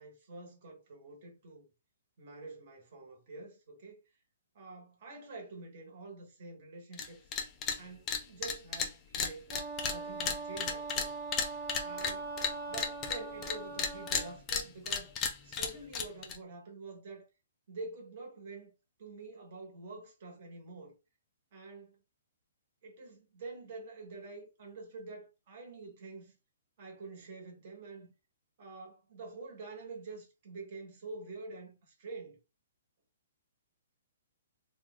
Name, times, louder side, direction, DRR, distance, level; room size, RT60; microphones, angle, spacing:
voice 1, 0.0-1.6 2.2-4.0 4.5-7.2 7.8-9.5 9.8-11.1 11.8-12.3 12.7-15.1 15.4-17.3 17.7-18.7 19.0-20.9 21.5-21.9 22.8-26.4 26.8-28.1 28.6-32.4, right 3 dB, 35° right, 1.3 m, -47 dB
sound 1, 6.9-7.1 7.3-7.8 8.1-13.5 13.8-16.4, left 6 dB, 15° left, 0.4 m, -33 dB
Wind instrument woodwind instrument, 9.5-14.4, right 3 dB, 20° right, 0.7 m, -41 dB
3.1 x 2.3 x 3.7 m
hypercardioid pair, 175°, 0 cm